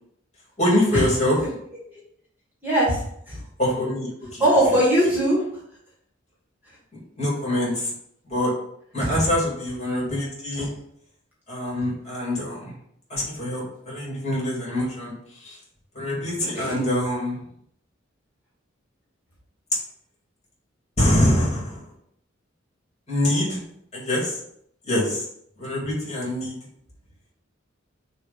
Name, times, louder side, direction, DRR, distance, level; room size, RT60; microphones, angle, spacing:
voice 1, 0.6-1.4 3.6-4.4 7.2-7.9 8.3-8.5 8.9-10.7 11.5-12.7 13.1-15.1 15.4-15.6 15.9-17.4 21.0-21.8 23.1-23.6 23.9-24.3 24.9-25.2 25.6-26.6, left 1 dB, 35° left, -4 dB, 2.5 m, -24 dB
voice 2, 2.6-3.4 4.4-5.4 9.0-9.3 10.6-10.7 16.4-16.8, right 1 dB, 10° right, -6 dB, 1.7 m, -21 dB
6.6 x 2.6 x 5.5 m, 0.70 s
head